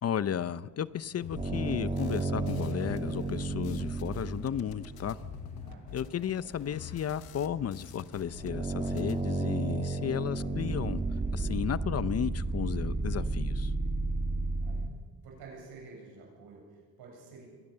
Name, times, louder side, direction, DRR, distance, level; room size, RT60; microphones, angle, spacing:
voice 1, 0.0-5.2 5.9-11.0 11.3-13.7, left 9 dB, 40° left, 16 dB, 0.7 m, -34 dB
sound 1, 0.6-12.4, left 1 dB, 20° left, 5.5 m, -54 dB
sound 2, 1.2-8.5 8.7-9.2, left 8 dB, 75° left, 1.4 m, -46 dB
sound 3, 1.3-5.4 8.1-14.9, right 3 dB, 20° right, 1.7 m, -32 dB
voice 2, 5.6-6.0 14.6-14.9 15.2-17.5, right 4 dB, 90° right, 0 dB, 7.9 m, -50 dB
23.5 x 18.0 x 6.8 m, 1.5 s
cardioid pair, 110°, 37 cm